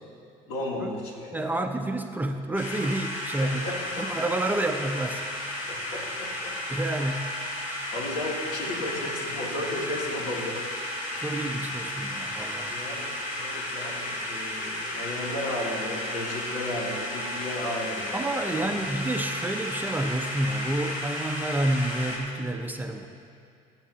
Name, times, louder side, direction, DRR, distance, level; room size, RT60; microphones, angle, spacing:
voice 1, 0.5-1.5 3.4-4.1 5.7-6.5 7.1-7.3 7.9-10.6 11.2-11.4 12.7-18.9, left 1 dB, 85° left, -4 dB, 2.8 m, -34 dB
voice 2, 1.3-3.6 4.0-5.2 6.7-7.2 11.2-12.8 18.1-23.0, right 1 dB, 10° right, 4 dB, 0.7 m, -29 dB
sound 1, 2.5-22.2, left 1 dB, 55° left, 2.7 m, -33 dB
19.5 x 9.0 x 2.8 m, 2.5 s
cardioid pair, 110°, 15 cm